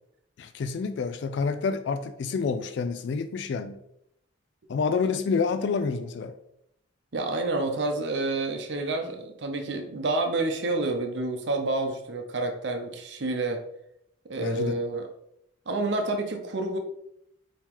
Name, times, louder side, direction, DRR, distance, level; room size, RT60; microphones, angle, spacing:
voice 1, 0.4-3.8 4.7-6.3 14.4-14.8, left 5 dB, 65° left, 9 dB, 0.3 m, -28 dB
voice 2, 7.1-13.6 14.2-15.1 15.7-16.8, right 2 dB, 65° right, 5 dB, 0.7 m, -29 dB
4.5 x 3.0 x 3.6 m, 0.76 s
head